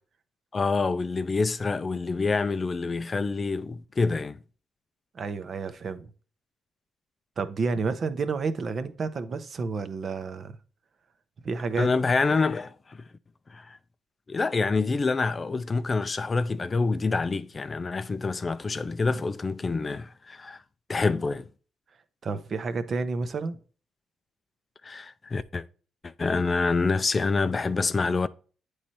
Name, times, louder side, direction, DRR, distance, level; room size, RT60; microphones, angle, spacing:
voice 1, 0.5-4.4 11.8-13.0 13.5-13.8 14.3-20.6 20.9-21.5 24.8-25.6 26.0-28.3, left 4 dB, 30° left, 0.4 m, -27 dB
voice 2, 5.1-6.1 7.4-10.6 11.4-11.9 22.2-23.6, right 4 dB, 50° right, 0.7 m, -30 dB
8.7 x 3.2 x 4.2 m
cardioid pair, 90°, 0 cm